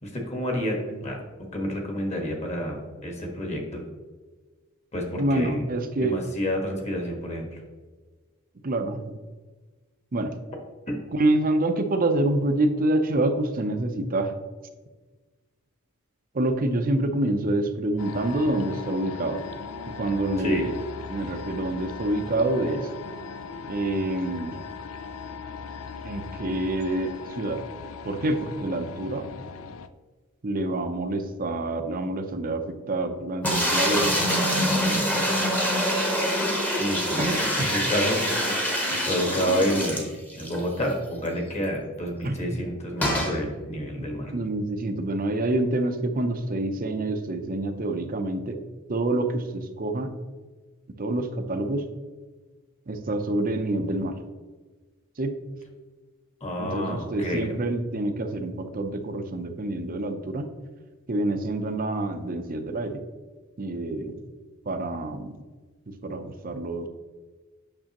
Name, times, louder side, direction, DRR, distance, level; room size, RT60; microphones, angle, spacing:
voice 1, 0.0-1.2 1.5-3.8 4.9-5.6 6.0-7.6 10.9-11.0 20.4-20.6 36.8-37.3 37.7-38.2 39.0-40.1 40.3-44.3 56.4-57.4, equal, 30° left, 2 dB, 1.4 m, -29 dB
voice 2, 5.2-6.2 8.6-9.1 10.1-10.3 11.1-14.3 16.3-19.4 19.9-20.7 21.1-22.9 23.7-24.6 26.0-27.6 28.0-29.2 30.4-34.2 34.5-35.4 37.2-37.8 42.2-42.4 44.3-48.6 48.9-50.1 51.0-51.9 52.9-54.1 55.2-55.3 56.6-60.5 61.1-63.0 63.6-64.2 64.7-65.4 65.9-66.9, right 2 dB, 40° right, 7 dB, 0.7 m, -27 dB
sound 1, 18.0-29.9, left 5 dB, 65° left, 0.4 m, -39 dB
sound 2, 33.4-40.6 40.9-41.0 41.3-41.4 43.0-43.4, equal, 10° left, 1.0 m, -25 dB
8.7 x 6.2 x 3.0 m, 1.4 s
head